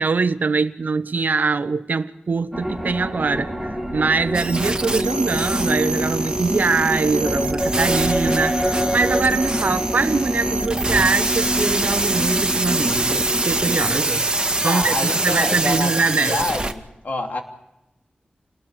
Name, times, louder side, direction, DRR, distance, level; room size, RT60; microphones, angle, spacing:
voice 1, 0.0-14.2 14.6-16.4, right 4 dB, 70° right, 1.1 m, -23 dB
sound 1, 2.5-14.0, equal, 5° left, 6.6 m, -26 dB
sound 2, 4.3-16.7, right 2 dB, 30° right, 1.9 m, -24 dB
voice 2, 14.6-17.4, left 2 dB, 65° left, 2.9 m, -27 dB
29.0 x 20.0 x 5.0 m
wide cardioid pair, 70°, 3 cm